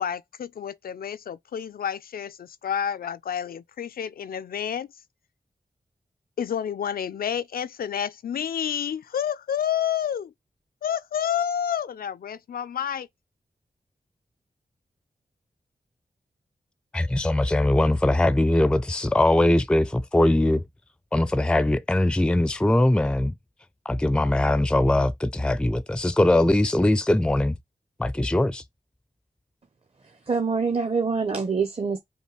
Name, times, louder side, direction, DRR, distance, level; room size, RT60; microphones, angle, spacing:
voice 1, 0.0-4.9 6.4-10.3 10.8-13.1, left 9 dB, 75° left, 0.4 m, -29 dB
voice 2, 16.9-20.6 21.1-23.3 23.9-27.6 28.0-28.6, left 1 dB, 5° left, 0.4 m, -21 dB
voice 3, 30.3-32.0, right 5 dB, 40° right, 0.8 m, -25 dB
5.4 x 2.3 x 3.2 m
cardioid pair, 45°, 15 cm